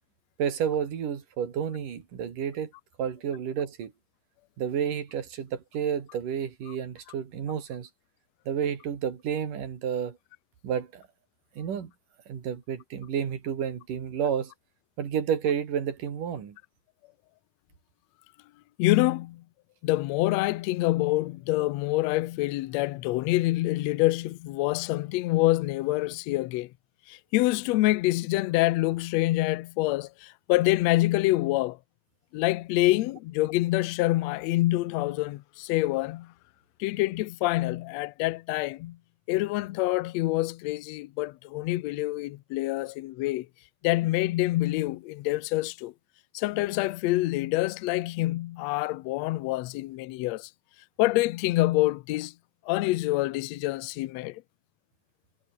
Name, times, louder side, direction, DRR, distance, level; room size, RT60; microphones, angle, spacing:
voice 1, 0.4-2.7 3.0-3.9 4.6-7.9 8.5-10.2 10.6-11.0 11.6-11.9 12.3-14.5 15.0-16.6, right 8 dB, 70° right, 4.3 m, -30 dB
voice 2, 18.8-19.4 19.8-26.7 27.1-31.8 32.3-36.3 36.8-39.0 39.3-43.5 43.8-45.9 46.3-50.5 51.0-52.3 52.7-54.4, left 18 dB, 80° left, 1.6 m, -26 dB
omnidirectional pair, 3.9 m